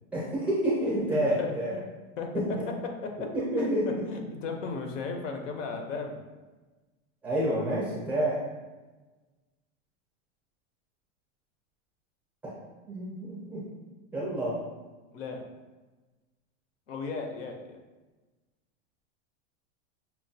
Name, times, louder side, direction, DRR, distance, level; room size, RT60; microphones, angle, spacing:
voice 1, 0.1-1.7 2.3-2.5 3.3-3.9 7.2-8.4 12.4-12.6 12.9-13.6 14.1-14.6, right 1 dB, 5° right, -8 dB, 0.4 m, -28 dB
voice 2, 1.4-1.8 2.2-3.3 3.6-3.7 4.0-6.2 15.1-15.4 16.9-17.8, left 4 dB, 90° left, 3 dB, 0.8 m, -35 dB
5.8 x 2.2 x 2.7 m, 1.2 s
supercardioid pair, 175°, 36 cm